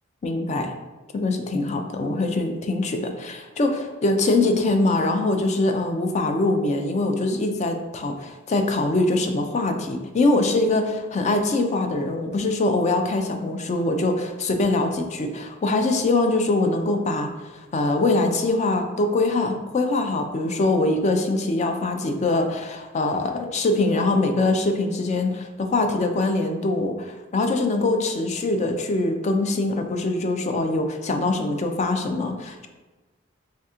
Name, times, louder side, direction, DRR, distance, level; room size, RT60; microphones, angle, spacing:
voice 1, 0.2-0.7 1.1-17.3 17.7-32.7, left 2 dB, 35° left, 5 dB, 0.4 m, -23 dB
3.3 x 2.8 x 3.6 m, 1.2 s
head